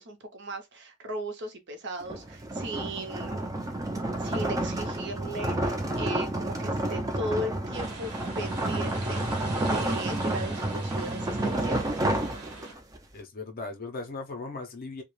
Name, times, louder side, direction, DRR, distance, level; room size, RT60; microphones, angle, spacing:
voice 1, 0.0-3.5 4.1-11.9, right 1 dB, 50° right, 0.6 m, -37 dB
sound 1, 2.0-13.0, right 1 dB, 15° right, 0.3 m, -30 dB
sound 2, 7.7-12.7, right 3 dB, 80° right, 0.9 m, -42 dB
voice 2, 13.1-15.0, left 3 dB, 40° left, 0.5 m, -38 dB
2.3 x 2.1 x 3.0 m
head